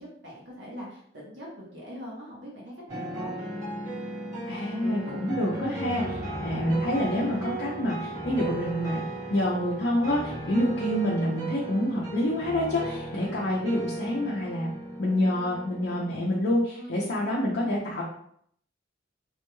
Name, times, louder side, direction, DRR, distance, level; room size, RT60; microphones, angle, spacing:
voice 1, 0.0-3.3 10.3-10.5 16.8-17.0, equal, 70° right, -6 dB, 1.0 m, -42 dB
sound 1, 2.9-16.2, right 1 dB, 20° right, 1.2 m, -36 dB
voice 2, 4.5-9.0 9.3-14.7 15.0-18.0, left 1 dB, 65° left, -5 dB, 0.7 m, -27 dB
3.4 x 3.1 x 2.2 m, 0.65 s
head